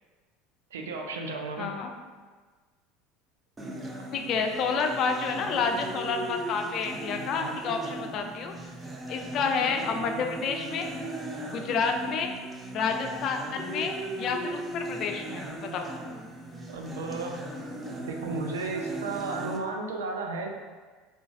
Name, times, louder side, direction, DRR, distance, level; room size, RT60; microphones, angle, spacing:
voice 1, 0.7-1.7 16.7-17.5 17.8-20.5, right 3 dB, 80° right, 3 dB, 0.4 m, -34 dB
voice 2, 1.6-1.9 4.1-8.5 9.1-10.9 11.5-12.3 12.7-15.9, left 5 dB, 50° left, 4 dB, 0.4 m, -29 dB
sound 1, 3.6-19.6, right 1 dB, 20° right, 0.5 m, -38 dB
3.8 x 2.3 x 2.5 m, 1.4 s
hypercardioid pair, 70°, 0 cm